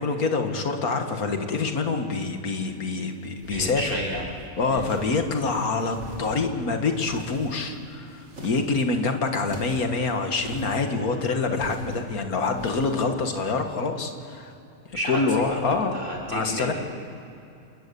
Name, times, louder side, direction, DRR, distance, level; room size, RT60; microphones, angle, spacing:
voice 1, 0.0-4.0 4.6-14.5 15.1-16.0 16.3-16.7, left 4 dB, 90° left, 5 dB, 2.1 m, -26 dB
sound 1, 3.4-4.3 4.7-5.3 5.8-6.5 7.0-7.8 8.2-8.9 9.4-9.9 10.4-11.0 11.5-12.0 12.5-13.0, right 2 dB, 55° right, 2.6 m, -40 dB
voice 2, 3.5-4.2 4.7-5.0 14.9-15.2 15.5-16.7, equal, 35° right, -3 dB, 3.5 m, -32 dB
28.0 x 20.5 x 7.0 m, 2.8 s
omnidirectional pair, 1.5 m